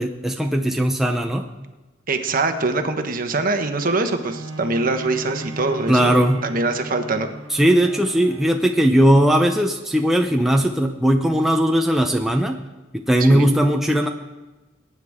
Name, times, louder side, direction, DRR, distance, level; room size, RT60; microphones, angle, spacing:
voice 1, 0.0-1.5 5.9-6.5 7.5-12.6 12.9-14.1, equal, ahead, 2 dB, 0.6 m, -18 dB
voice 2, 2.1-7.3 13.2-13.5, right 3 dB, 45° right, 6 dB, 1.2 m, -23 dB
Bowed string instrument, 4.2-9.9 10.5-10.6, right 2 dB, 80° right, 1.5 m, -38 dB
22.0 x 9.7 x 3.6 m, 1.1 s
head